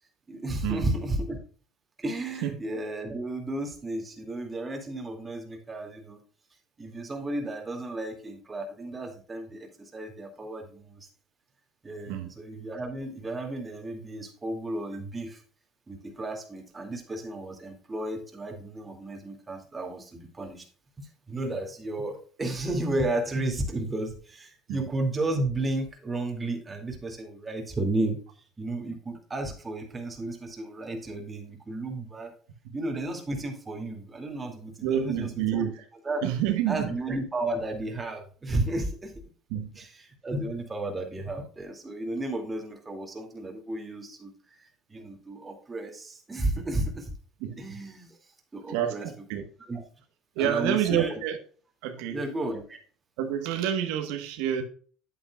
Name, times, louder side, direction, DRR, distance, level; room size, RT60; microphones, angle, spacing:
voice 1, 0.3-1.4 2.0-6.2 6.8-11.1 11.8-15.4 15.9-20.7 21.0-28.2 28.6-32.3 32.7-35.6 36.0-36.3 36.7-39.1 39.8-44.3 44.6-47.1 47.6-48.2 48.5-49.1 49.7-49.8 50.4-51.2 52.1-52.8, right 2 dB, 20° right, 2.4 m, -33 dB
voice 2, 34.8-35.8 36.2-36.9 39.5-39.7 47.4-47.8 48.7-49.4 50.4-51.4 51.8-52.2 53.2-54.6, right 10 dB, 80° right, 1.2 m, -28 dB
9.6 x 8.6 x 2.3 m
cardioid pair, 115°, 0 cm